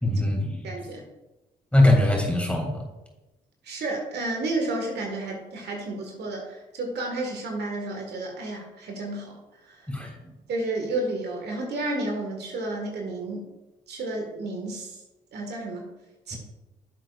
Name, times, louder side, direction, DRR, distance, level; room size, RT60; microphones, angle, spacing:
voice 1, 0.0-0.6 1.7-2.8 9.9-10.1, left 1 dB, 5° left, -1 dB, 3.0 m, -21 dB
voice 2, 0.6-1.0 3.6-9.9 10.5-13.4 13.9-15.0 15.3-15.9 16.3-16.4, right 2 dB, 65° right, 1 dB, 1.7 m, -31 dB
10.5 x 7.5 x 2.5 m, 1.0 s
hypercardioid pair, 50°, 18 cm